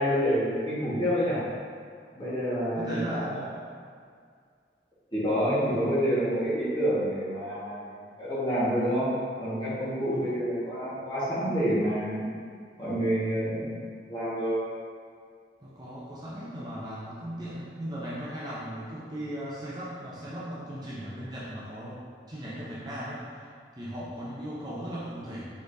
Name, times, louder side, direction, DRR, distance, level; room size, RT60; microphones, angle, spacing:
voice 1, 0.0-1.4 2.1-3.5 5.1-9.1 9.4-12.4 12.8-14.6, equal, 25° left, -11 dB, 1.5 m, -28 dB
voice 2, 2.8-3.6 5.7-5.8 10.1-10.4 15.6-22.0 22.3-23.5 23.8-25.5, equal, 25° right, -9 dB, 0.6 m, -37 dB
4.7 x 4.1 x 2.7 m, 2.1 s
head